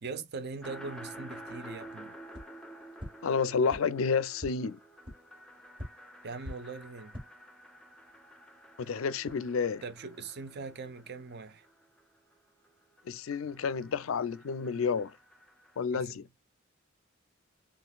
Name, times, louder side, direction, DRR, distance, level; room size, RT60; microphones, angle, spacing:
voice 1, 0.0-2.2 6.2-7.2 9.8-11.7 15.9-16.2, right 4 dB, 55° right, 0.6 m, -41 dB
sound 1, 0.6-12.3 12.6-15.8, right 1 dB, 5° left, 0.5 m, -51 dB
sound 2, 2.3-2.4 3.0-3.1 3.7-3.8 4.4-4.5 5.0-5.1 5.8-5.9 6.4-6.5 7.0-7.2, equal, 25° right, 1.2 m, -40 dB
voice 2, 3.2-4.8 8.8-9.8 13.1-15.1 15.8-16.3, left 5 dB, 80° left, 0.4 m, -30 dB
3.8 x 3.0 x 2.3 m
head